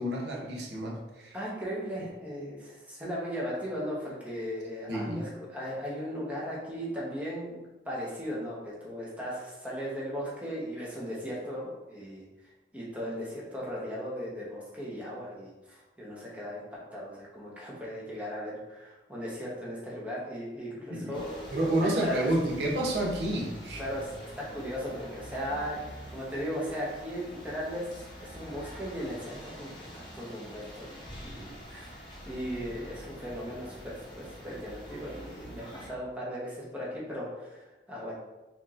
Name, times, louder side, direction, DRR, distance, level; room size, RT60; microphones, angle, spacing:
voice 1, 0.0-1.4 4.9-5.2 20.9-21.2 21.5-23.8, right 1 dB, 80° right, -2 dB, 0.8 m, -29 dB
voice 2, 1.3-12.2 12.7-16.6 16.9-22.1 23.8-25.8 26.1-27.9 28.2-31.9 32.3-38.1, equal, 10° right, -6 dB, 0.9 m, -37 dB
sound 1, 21.1-35.9, equal, 25° left, 0.7 m, -46 dB
4.3 x 3.0 x 2.5 m, 1.1 s
head